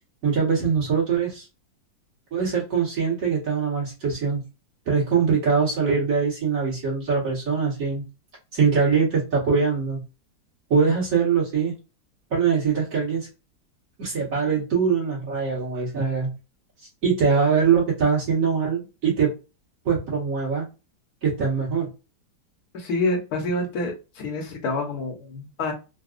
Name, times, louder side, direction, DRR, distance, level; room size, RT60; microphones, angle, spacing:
voice 1, 0.2-1.5 2.3-4.4 4.9-8.1 8.5-10.0 10.7-11.7 12.3-13.3 14.0-16.3 17.0-19.3 19.9-20.7 21.2-21.9, right 6 dB, 45° right, 1.8 m, -22 dB
voice 2, 22.7-25.7, left 2 dB, 60° left, 1.3 m, -27 dB
4.0 x 2.3 x 2.4 m
omnidirectional pair, 2.0 m